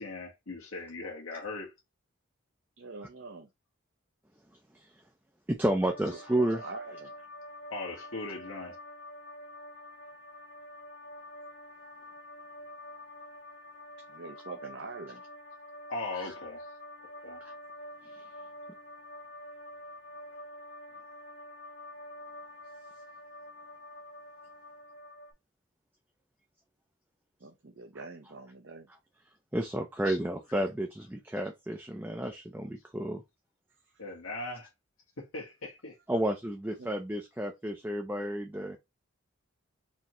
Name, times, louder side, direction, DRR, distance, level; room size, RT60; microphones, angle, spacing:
voice 1, 0.0-1.7 7.7-8.8 15.9-16.6 17.2-17.4 30.0-30.2 34.0-34.7 35.2-36.0, left 2 dB, 75° left, 1.3 m, -39 dB
voice 2, 2.8-3.5 6.0-7.1 14.1-15.2 27.4-28.9 36.8-36.9, right 3 dB, 55° right, 0.6 m, -44 dB
voice 3, 5.5-6.6 16.2-16.3 17.4-17.5 29.5-33.2 36.1-38.8, right 1 dB, 10° right, 0.4 m, -31 dB
sound 1, 5.8-25.3, left 1 dB, 50° left, 1.2 m, -47 dB
4.3 x 2.8 x 3.0 m
head